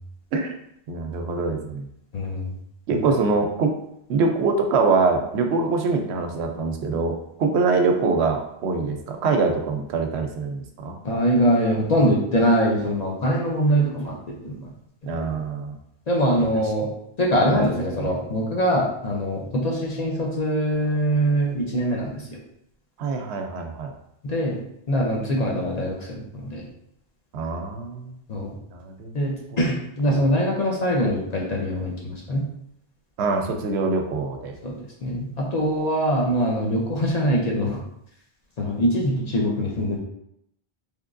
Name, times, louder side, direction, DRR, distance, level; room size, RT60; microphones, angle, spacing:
voice 1, 0.9-1.9 2.9-3.7 4.1-10.9 15.1-15.8 16.5-16.6 17.5-17.6 17.9-18.1 23.0-23.9 27.3-28.2 28.7-29.1 29.5-29.6 30.1-30.3 33.2-34.6, right 4 dB, 85° right, 4 dB, 0.8 m, -24 dB
voice 2, 2.1-2.5 11.0-14.6 15.1-15.4 16.1-16.9 17.2-22.4 24.2-24.6 24.9-26.6 28.3-28.6 29.1-32.4 34.6-37.8 38.6-40.0, equal, 45° left, -2 dB, 0.6 m, -23 dB
3.5 x 2.9 x 2.5 m, 0.76 s
omnidirectional pair, 1.1 m